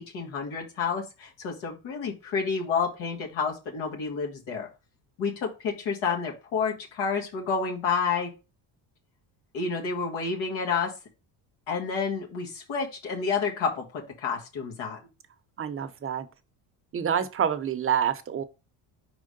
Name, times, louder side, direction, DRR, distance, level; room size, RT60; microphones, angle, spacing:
voice 1, 0.0-4.7 5.2-8.3 9.5-10.9 11.7-15.0, left 5 dB, 80° left, 1.7 m, -29 dB
voice 2, 15.6-16.3 16.9-18.4, right 8 dB, 30° right, 0.7 m, -27 dB
4.9 x 3.8 x 5.1 m
cardioid pair, 115°, 45 cm